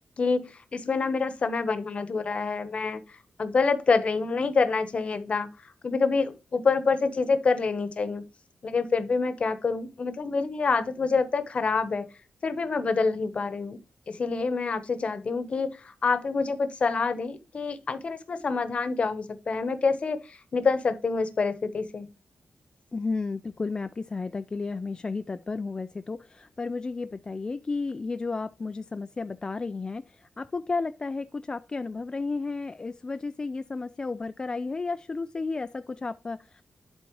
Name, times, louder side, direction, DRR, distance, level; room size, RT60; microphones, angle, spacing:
voice 1, 0.2-3.0 3.4-5.5 5.8-8.2 8.6-12.1 12.4-13.8 14.1-22.1, left 4 dB, 45° left, 1.0 m, -27 dB
voice 2, 22.9-30.0 30.4-36.6, left 3 dB, 25° left, 0.3 m, -32 dB
11.5 x 4.1 x 3.0 m
wide cardioid pair, 140°, 3 cm